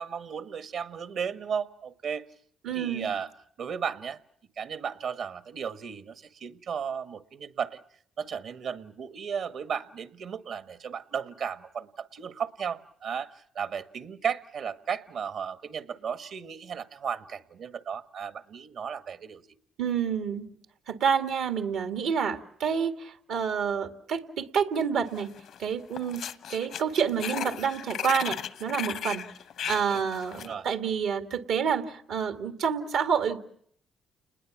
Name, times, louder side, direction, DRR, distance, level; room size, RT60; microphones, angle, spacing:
voice 1, 0.0-2.3 2.7-3.3 3.6-4.2 4.6-7.8 8.2-19.4 30.3-30.7, right 7 dB, 70° right, 11 dB, 1.5 m, -35 dB
voice 2, 2.6-3.1 19.8-20.5 20.9-25.3 25.6-26.2 26.5-29.2 29.7-33.4, right 7 dB, 85° right, 8 dB, 2.1 m, -28 dB
sound 1, 25.2-25.6 25.9-30.5, left 9 dB, 75° left, 1.0 m, -36 dB
30.0 x 21.0 x 7.3 m, 0.64 s
cardioid pair, 90°, 0 cm